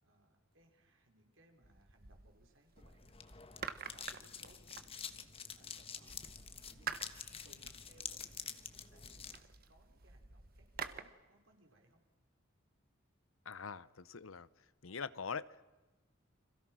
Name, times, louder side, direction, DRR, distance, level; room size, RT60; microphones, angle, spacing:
voice 1, 0.0-3.2 3.5-5.3 5.5-6.2 6.7-12.0, right 1 dB, 70° right, 3 dB, 5.2 m, -67 dB
sound 1, 1.6-2.8 3.3-5.5 6.1-11.0, right 6 dB, 50° right, 1.4 m, -49 dB
sound 2, 2.8-9.4, left 7 dB, 30° left, 1.4 m, -48 dB
sound 3, 6.0-12.1, left 2 dB, 10° left, 3.6 m, -73 dB
voice 2, 13.4-14.5 14.8-15.5, left 5 dB, 85° left, 17 dB, 0.9 m, -43 dB
30.0 x 26.5 x 6.3 m, 1.2 s
head